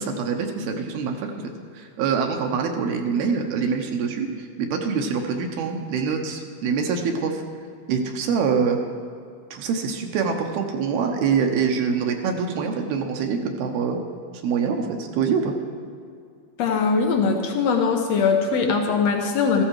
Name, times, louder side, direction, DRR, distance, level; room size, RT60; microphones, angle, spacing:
voice 1, 0.0-7.4 7.9-8.8 9.5-14.0 14.4-15.6, right 5 dB, 75° right, 3 dB, 2.8 m, -25 dB
voice 2, 16.6-19.6, left 5 dB, 75° left, 3 dB, 1.5 m, -21 dB
14.5 x 14.0 x 4.8 m, 2.3 s
omnidirectional pair, 4.6 m